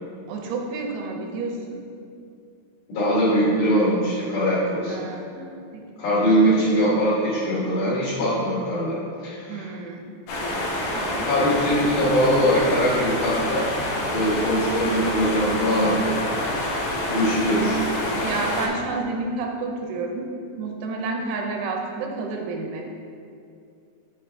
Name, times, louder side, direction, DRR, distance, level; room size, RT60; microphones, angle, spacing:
voice 1, 0.3-1.8 4.9-6.2 9.5-10.0 10.9-11.3 18.1-20.3 20.6-22.8, right 3 dB, 80° right, 1 dB, 2.7 m, -30 dB
voice 2, 2.9-5.0 6.0-9.0 9.2-9.7 11.2-13.7 14.1-16.2 17.1-17.8, equal, 65° left, -10 dB, 2.1 m, -22 dB
sound 1, 10.3-18.7, left 1 dB, 85° left, 1.8 m, -27 dB
6.6 x 4.6 x 3.3 m, 2.4 s
omnidirectional pair, 4.9 m